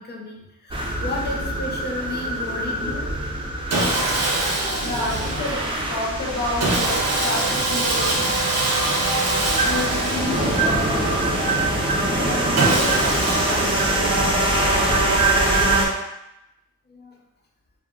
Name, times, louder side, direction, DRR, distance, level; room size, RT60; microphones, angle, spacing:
voice 1, 0.0-3.1 16.9-17.2, left 1 dB, 35° left, 0 dB, 0.5 m, -33 dB
sound 1, 0.7-15.9, right 2 dB, 15° right, 0.5 m, -23 dB
Sawing, 3.7-5.7 6.6-11.1 12.6-14.4, right 2 dB, 55° right, 0.7 m, -24 dB
voice 2, 4.8-8.5 9.6-11.4 12.1-13.6 13.9-14.7, left 1 dB, 55° left, -11 dB, 1.5 m, -30 dB
3.2 x 2.2 x 2.3 m, 0.87 s
wide cardioid pair, 120°, 31 cm